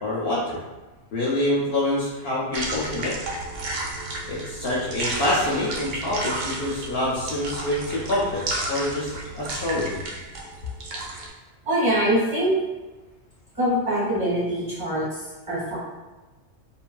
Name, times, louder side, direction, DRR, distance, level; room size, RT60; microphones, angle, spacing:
voice 1, 0.0-0.6 1.1-3.2 4.3-10.0, left 1 dB, 65° left, -5 dB, 0.7 m, -26 dB
sound 1, 2.5-11.3, right 2 dB, 80° right, 0.9 m, -32 dB
voice 2, 11.6-12.6 13.5-15.8, equal, 25° right, -10 dB, 1.1 m, -24 dB
2.8 x 2.5 x 2.2 m, 1.2 s
omnidirectional pair, 1.3 m